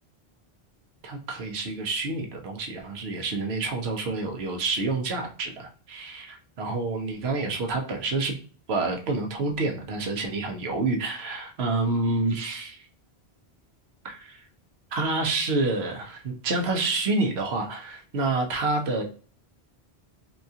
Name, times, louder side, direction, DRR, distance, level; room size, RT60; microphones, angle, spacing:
voice 1, 1.0-8.4 8.7-12.8 14.0-14.4 14.9-19.0, right 3 dB, 75° right, 3 dB, 1.0 m, -28 dB
4.1 x 2.3 x 2.7 m, 0.42 s
omnidirectional pair, 1.1 m